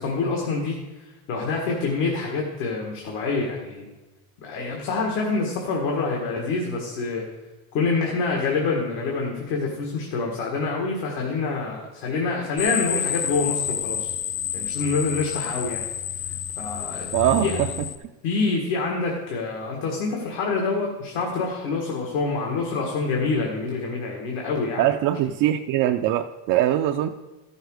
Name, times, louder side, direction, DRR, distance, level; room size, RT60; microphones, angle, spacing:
voice 1, 0.0-3.9 4.4-7.2 7.7-14.1 14.5-15.9 16.6-17.1 17.4-17.6 18.2-24.8, left 4 dB, 70° left, -1 dB, 1.9 m, -26 dB
sound 1, 12.6-18.0, left 9 dB, 35° left, 0.4 m, -29 dB
voice 2, 17.1-17.7 24.8-27.1, right 12 dB, 50° right, 4 dB, 0.5 m, -22 dB
13.5 x 6.6 x 4.8 m, 1.1 s
cardioid pair, 145°, 43 cm